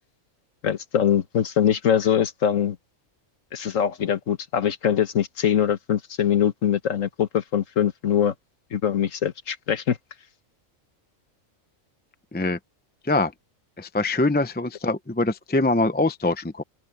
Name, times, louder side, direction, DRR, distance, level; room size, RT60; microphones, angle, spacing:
voice 1, 0.6-2.8 3.5-8.3 8.7-10.0, left 9 dB, 75° left, 1.5 m, -23 dB
voice 2, 13.8-16.6, left 2 dB, 10° left, 0.5 m, -23 dB
open air
omnidirectional pair, 1.4 m